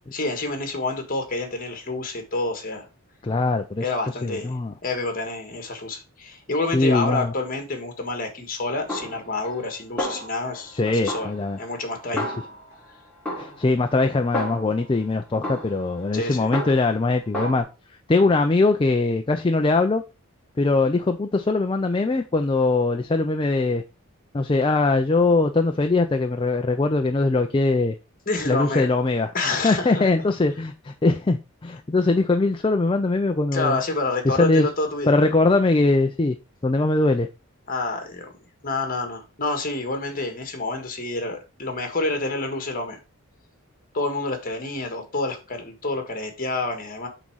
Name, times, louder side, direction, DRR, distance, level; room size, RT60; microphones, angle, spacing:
voice 1, 0.1-2.9 3.8-4.5 4.8-11.3 11.6-12.3 16.1-16.5 28.3-28.9 29.3-30.0 33.5-35.1 37.7-38.3 38.6-43.0 43.9-47.1, left 2 dB, 40° left, 1.6 m, -28 dB
voice 2, 3.2-3.8 4.2-4.7 6.7-7.3 10.7-11.6 12.1-12.3 13.4-17.7 18.1-20.0 20.6-23.8 24.3-28.0 28.5-33.8 34.2-34.7 35.1-36.4 36.6-37.3, left 3 dB, 25° left, 0.4 m, -21 dB
Snare drum, 8.9-9.7 10.0-10.7 11.1-12.9 13.3-14.9 15.4-17.0 17.3-17.6, left 1 dB, 5° left, 2.6 m, -32 dB
8.0 x 3.7 x 4.6 m
head